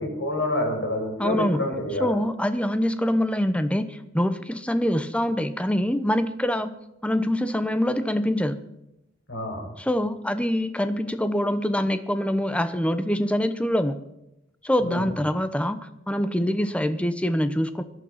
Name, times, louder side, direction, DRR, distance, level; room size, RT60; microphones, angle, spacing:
voice 1, 0.0-2.1 9.3-9.6 14.8-15.1, left 1 dB, 70° left, 0 dB, 5.5 m, -28 dB
voice 2, 1.2-1.7 2.0-8.6 9.8-14.0 14.6-17.8, equal, 5° left, 11 dB, 0.8 m, -25 dB
17.5 x 12.0 x 5.8 m, 0.88 s
head